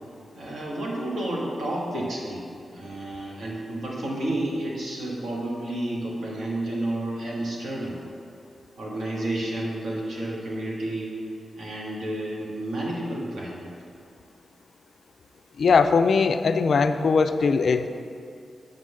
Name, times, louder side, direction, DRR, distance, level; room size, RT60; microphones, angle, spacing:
voice 1, 0.3-2.4 2.7-8.0 8.8-11.2 11.6-13.7, right 1 dB, 85° right, -4 dB, 1.7 m, -31 dB
voice 2, 15.6-17.9, left 5 dB, 60° left, 9 dB, 0.3 m, -20 dB
7.4 x 3.9 x 6.4 m, 2.4 s
wide cardioid pair, 120°, 0 cm